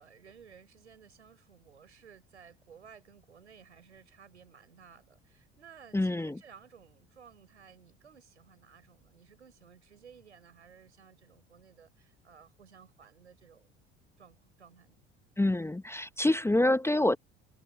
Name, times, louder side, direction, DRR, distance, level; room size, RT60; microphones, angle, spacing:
voice 1, 0.0-13.8 14.2-15.0, right 7 dB, 85° right, 5.7 m, -56 dB
voice 2, 5.9-6.4 15.4-17.2, left 1 dB, 5° left, 1.0 m, -26 dB
figure-of-eight pair, 60°, 34 cm